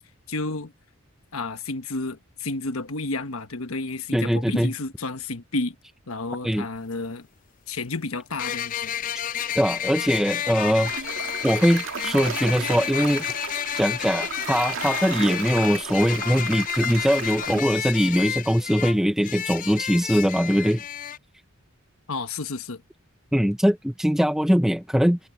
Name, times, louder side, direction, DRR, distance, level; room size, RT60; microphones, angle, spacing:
voice 1, 0.3-0.7 1.3-5.8 6.1-7.3 7.7-8.9 22.1-22.8, left 3 dB, 80° left, 1.3 m, -31 dB
voice 2, 4.1-4.7 6.4-6.6 9.5-11.0 11.4-13.2 13.8-20.8 23.3-25.2, equal, ahead, 0.8 m, -22 dB
sound 1, 6.8-6.9 8.4-21.2, left 10 dB, 40° left, 0.4 m, -31 dB
sound 2, 10.8-17.6, right 5 dB, 65° right, 2.3 m, -34 dB
head